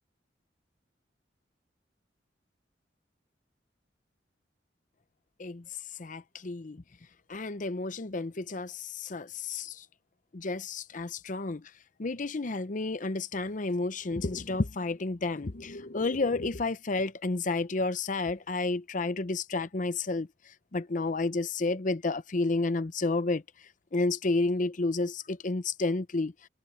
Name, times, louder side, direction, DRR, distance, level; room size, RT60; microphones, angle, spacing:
voice 1, 6.0-6.8 7.3-9.8 10.3-11.7 12.0-20.3 20.7-23.4 23.9-26.3, left 3 dB, 45° left, 0.7 m, -31 dB
head